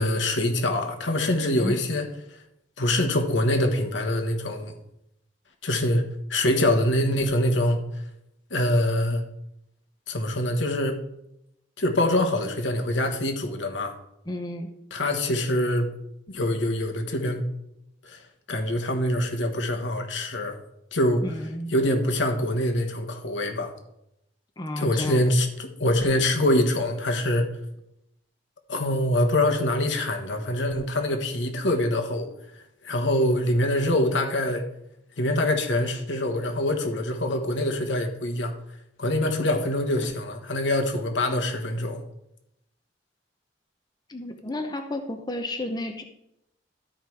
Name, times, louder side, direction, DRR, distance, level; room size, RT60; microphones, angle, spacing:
voice 1, 0.0-2.0 2.8-4.7 5.6-7.8 8.5-9.2 10.1-11.0 11.8-13.9 14.9-15.9 16.3-17.4 18.0-18.2 18.5-20.6 20.9-21.2 21.7-23.7 24.8-27.5 28.7-32.3 32.8-34.6 35.2-38.5 39.0-42.0, left 1 dB, 80° left, 1.5 m, -24 dB
voice 2, 14.3-14.7 21.2-21.7 24.6-25.3 44.1-46.0, left 1 dB, 25° left, 0.8 m, -32 dB
12.5 x 5.1 x 4.7 m
head